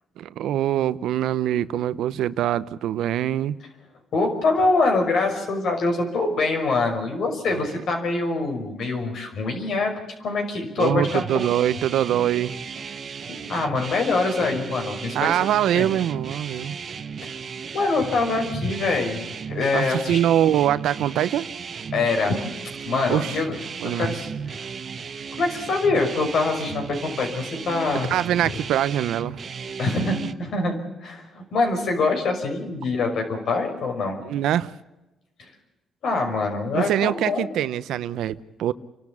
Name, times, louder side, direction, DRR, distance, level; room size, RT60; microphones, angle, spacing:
voice 1, 0.2-3.6 10.8-12.5 15.1-16.8 19.7-21.5 23.1-23.3 23.8-24.2 28.1-29.4 34.2-34.7 36.7-38.7, right 11 dB, 80° right, 16 dB, 0.7 m, -23 dB
voice 2, 4.1-9.9 10.2-11.3 13.5-15.3 15.7-15.9 17.2-17.4 17.7-19.2 19.5-20.2 21.9-22.4 22.8-23.5 23.8-24.7 25.3-28.1 29.8-34.2 35.4-35.5 36.0-37.5, left 3 dB, 65° left, 4 dB, 5.7 m, -24 dB
sound 1, 10.8-30.3, right 6 dB, 45° right, 1.1 m, -35 dB
29.5 x 12.5 x 8.6 m, 1.0 s
cardioid pair, 90°, 0 cm